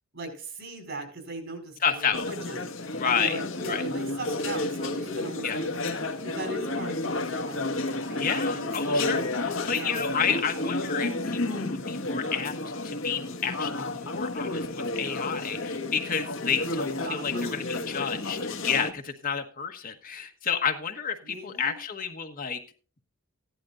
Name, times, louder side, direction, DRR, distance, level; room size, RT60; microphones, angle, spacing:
voice 1, 0.1-5.8 6.2-9.1 9.7-10.1 16.7-17.7 21.2-21.8, right 2 dB, 55° right, 5 dB, 4.7 m, -39 dB
voice 2, 1.8-2.2 3.0-3.4 3.7-3.8 5.4-5.6 8.2-12.5 12.8-22.6, left 6 dB, 40° left, 5 dB, 1.4 m, -30 dB
restaurant sounds, 2.1-18.9, left 2 dB, 65° left, 1.6 m, -31 dB
16.0 x 11.5 x 2.6 m, 0.37 s
head